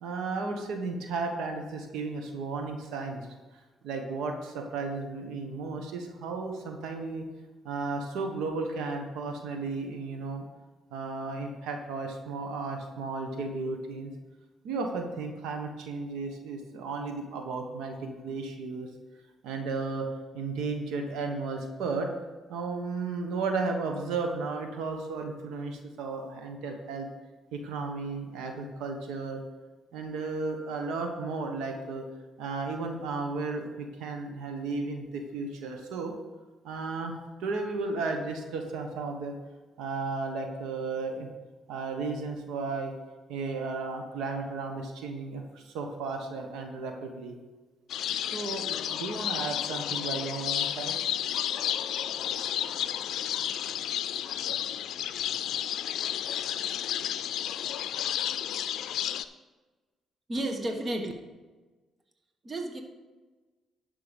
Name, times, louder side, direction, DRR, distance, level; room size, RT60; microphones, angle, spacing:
voice 1, 0.0-3.3 3.8-7.3 7.6-10.4 10.9-14.1 14.6-18.9 19.4-20.1 20.3-22.1 22.5-27.1 27.5-29.4 29.9-32.0 32.4-36.1 36.6-37.1 37.4-39.4 39.8-41.3 41.7-42.9 43.3-47.4 48.3-50.9, right 3 dB, 90° right, 4 dB, 1.2 m, -34 dB
sound 1, 47.9-59.2, left 11 dB, 80° left, 0.4 m, -32 dB
voice 2, 60.3-61.1 62.4-62.8, right 1 dB, 35° right, 4 dB, 1.4 m, -32 dB
11.5 x 5.6 x 5.2 m, 1.3 s
cardioid pair, 90°, 0 cm